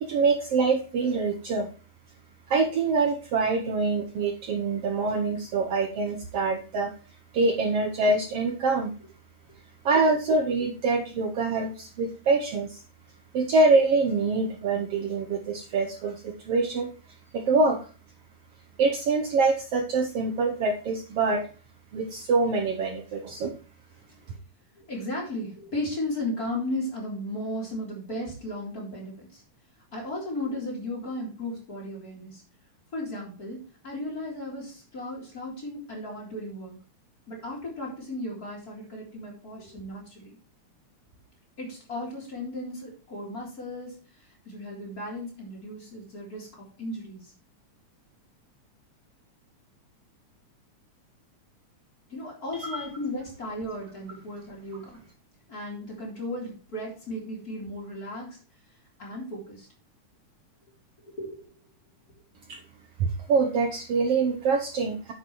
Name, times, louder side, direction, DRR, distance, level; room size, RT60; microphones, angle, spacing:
voice 1, 0.0-1.7 2.5-6.9 7.3-8.9 9.9-12.8 13.3-16.9 17.3-17.8 18.8-21.5 21.9-23.6 52.6-52.9 62.5-62.6 63.0-65.1, right 3 dB, 65° right, 4 dB, 1.7 m, -25 dB
voice 2, 24.8-29.4 29.9-32.4 32.9-36.8 37.3-40.4 41.6-46.5 46.8-47.3 52.1-55.0 55.5-58.4 59.0-59.7 61.0-61.5, left 1 dB, 30° left, -3 dB, 4.0 m, -35 dB
10.5 x 8.0 x 3.1 m, 0.38 s
omnidirectional pair, 3.4 m